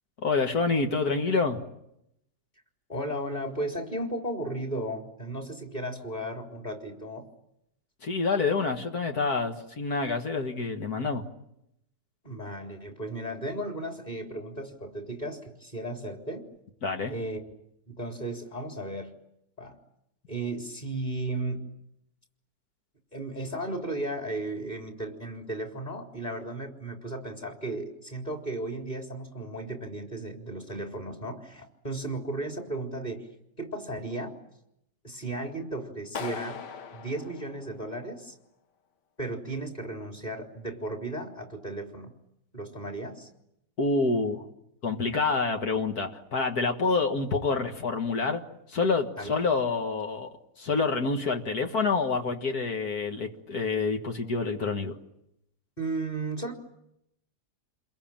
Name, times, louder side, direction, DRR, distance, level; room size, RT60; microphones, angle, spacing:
voice 1, 0.2-1.6 8.0-11.2 16.8-17.1 43.8-44.4 44.8-48.4 48.7-50.3 50.6-55.0, left 4 dB, 65° left, 4 dB, 2.2 m, -27 dB
voice 2, 2.9-7.3 12.2-16.5 17.1-17.4 17.9-19.1 19.6-19.8 20.3-21.6 23.1-33.3 33.6-34.4 35.0-36.6 36.9-38.3 39.2-42.1 42.5-43.3 49.2-49.3 55.8-56.5, right 1 dB, 25° left, 3 dB, 3.8 m, -35 dB
Clapping, 36.2-38.2, left 6 dB, 90° left, 1.9 m, -40 dB
29.0 x 22.0 x 8.9 m, 0.81 s
omnidirectional pair, 1.8 m